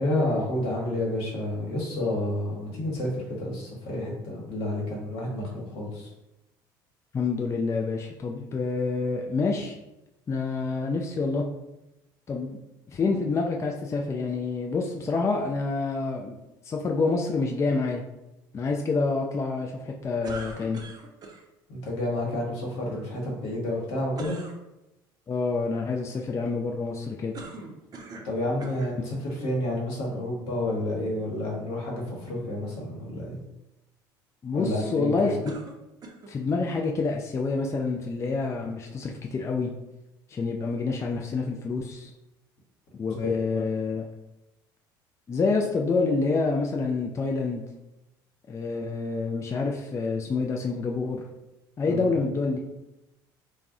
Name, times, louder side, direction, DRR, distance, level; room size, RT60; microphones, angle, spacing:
voice 1, 0.0-6.1 21.7-24.4 28.2-33.4 34.5-35.3 43.5-43.6 51.8-52.1, left 1 dB, 65° left, -2 dB, 1.0 m, -30 dB
voice 2, 7.1-9.7 10.3-11.4 12.3-12.6 12.9-16.4 16.6-18.0 18.5-20.8 25.3-27.4 34.4-35.5 36.3-39.7 40.3-42.1 42.9-44.1 45.3-47.6 48.5-51.2 51.8-52.6, left 4 dB, 25° left, 1 dB, 0.3 m, -27 dB
sound 1, 20.2-21.4 24.1-24.6 27.3-28.3 28.6-29.0 29.8-29.9 35.5-36.4, right 3 dB, 35° right, 0.5 m, -41 dB
2.3 x 2.1 x 3.6 m, 0.94 s
hypercardioid pair, 70°, 11 cm